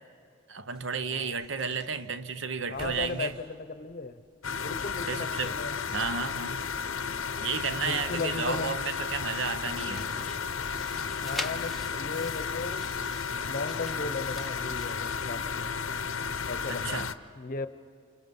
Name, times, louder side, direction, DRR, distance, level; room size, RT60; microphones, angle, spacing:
voice 1, 0.5-3.3 5.1-5.5 5.9-6.6 7.4-10.1 16.7-17.1, right 5 dB, 65° right, 0.8 m, -32 dB
sound 1, 0.7-12.5, equal, 25° right, 5.3 m, -56 dB
voice 2, 1.0-1.4 2.7-4.2 4.6-5.8 7.7-8.8 9.8-10.2 11.1-15.7 16.4-17.0 17.3-17.7, left 3 dB, 45° left, 0.8 m, -37 dB
sound 2, 4.4-17.1, left 6 dB, 85° left, 0.7 m, -33 dB
sound 3, 9.2-15.3, left 1 dB, ahead, 0.7 m, -44 dB
29.0 x 28.0 x 5.4 m
head